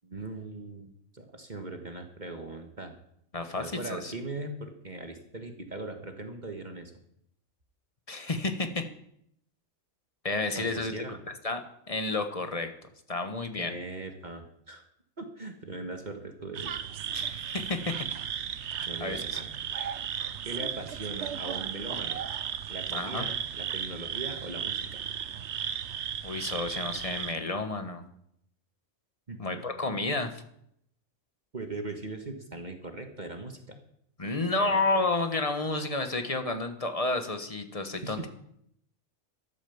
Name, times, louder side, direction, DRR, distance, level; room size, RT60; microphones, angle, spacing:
voice 1, 0.0-3.0 3.5-6.9 10.5-11.2 13.5-14.8 15.2-16.8 17.2-17.3 18.9-19.5 20.4-22.2 22.7-25.0 29.3-29.6 31.5-33.8 34.6-34.8 38.0-38.3, right 2 dB, 35° right, 5 dB, 1.6 m, -40 dB
voice 2, 3.3-4.1 8.1-8.9 10.2-10.9 11.4-12.7 13.1-13.7 17.1-18.1 18.6-19.4 22.9-23.3 26.2-28.0 29.4-30.4 34.2-38.3, left 2 dB, 25° left, 7 dB, 1.4 m, -31 dB
sound 1, 16.5-27.3, right 8 dB, 60° right, 1.0 m, -35 dB
13.5 x 11.5 x 7.1 m, 0.73 s
omnidirectional pair, 1.4 m